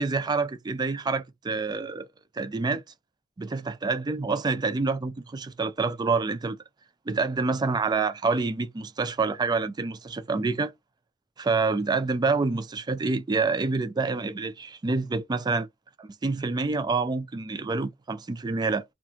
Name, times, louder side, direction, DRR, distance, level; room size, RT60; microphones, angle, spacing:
voice 1, 0.0-2.1 2.3-2.8 3.4-6.6 7.1-10.7 11.4-15.7 16.2-18.8, right 4 dB, 20° right, 0.3 m, -27 dB
2.5 x 2.3 x 2.8 m
head